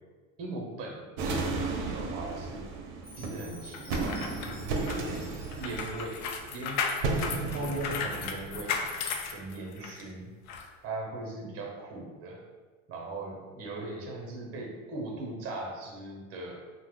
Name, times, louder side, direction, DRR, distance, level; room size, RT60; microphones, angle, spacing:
voice 1, 0.4-2.6 3.2-5.2 5.6-6.2 6.5-6.9 7.5-8.7 9.3-10.3 10.8-12.4 12.9-16.6, right 2 dB, 40° right, 0 dB, 0.9 m, -39 dB
sound 1, 1.2-9.4, right 3 dB, 70° right, 0.6 m, -34 dB
Chime, 3.0-7.1, equal, 5° left, 0.4 m, -52 dB
sound 2, 3.7-10.0 10.5-10.6, left 5 dB, 65° left, 0.5 m, -35 dB
2.8 x 2.2 x 3.6 m, 1.4 s
supercardioid pair, 120°, 38 cm